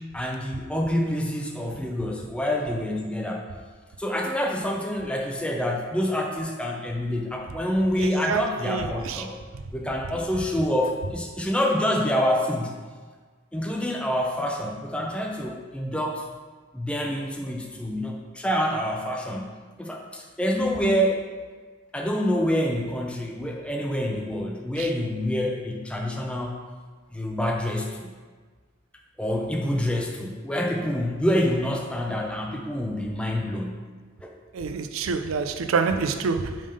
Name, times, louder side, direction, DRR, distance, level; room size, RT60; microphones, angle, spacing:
voice 1, 0.1-3.4 4.0-9.4 9.7-12.7 13.5-16.2 16.7-21.3 21.9-26.6 27.1-28.1 29.2-33.8 34.2-34.3, equal, 5° left, 0 dB, 0.4 m, -27 dB
voice 2, 8.0-9.3 24.8-24.9 34.5-36.6, right 5 dB, 90° right, 8 dB, 0.5 m, -27 dB
5.3 x 3.6 x 5.3 m, 1.4 s
head